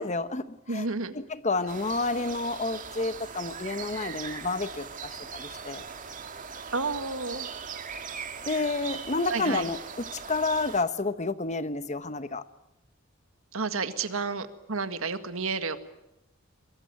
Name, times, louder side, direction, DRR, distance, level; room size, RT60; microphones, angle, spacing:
voice 1, 0.0-0.9 1.1-5.8 8.5-9.8 10.1-12.4, left 3 dB, 35° left, 13 dB, 1.1 m, -30 dB
voice 2, 0.7-1.2 6.7-7.5 9.3-9.7 13.5-15.8, right 4 dB, 80° right, 10 dB, 1.8 m, -31 dB
sound 1, 1.7-10.8, right 6 dB, 40° right, 2.1 m, -40 dB
23.0 x 22.0 x 9.1 m, 0.89 s
head